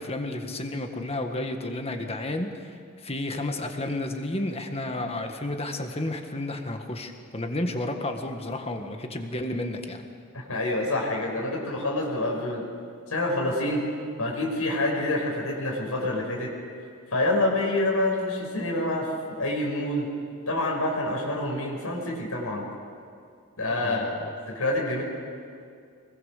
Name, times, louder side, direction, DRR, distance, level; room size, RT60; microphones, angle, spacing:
voice 1, 0.0-10.1 23.7-24.4, left 1 dB, 25° left, 5 dB, 1.7 m, -32 dB
voice 2, 10.3-12.6 13.1-13.8 14.2-16.5 17.1-19.1 19.3-20.1 20.5-22.6 23.6-24.1 24.5-25.0, left 1 dB, 75° left, -1 dB, 5.6 m, -27 dB
25.0 x 21.5 x 6.7 m, 2.3 s
head